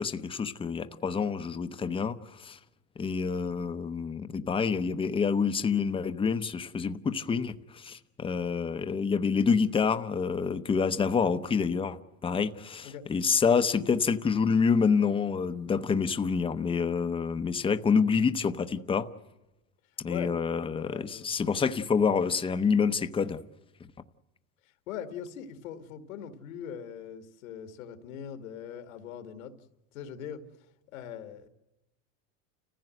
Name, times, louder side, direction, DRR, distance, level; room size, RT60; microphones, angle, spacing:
voice 1, 0.0-2.6 3.0-19.1 20.0-23.4, left 5 dB, 15° left, 0.8 m, -27 dB
voice 2, 20.7-21.3 24.6-29.5 29.9-30.4 30.9-31.5, left 8 dB, 85° left, 2.2 m, -41 dB
30.0 x 15.5 x 7.8 m
supercardioid pair, 130°, 40 cm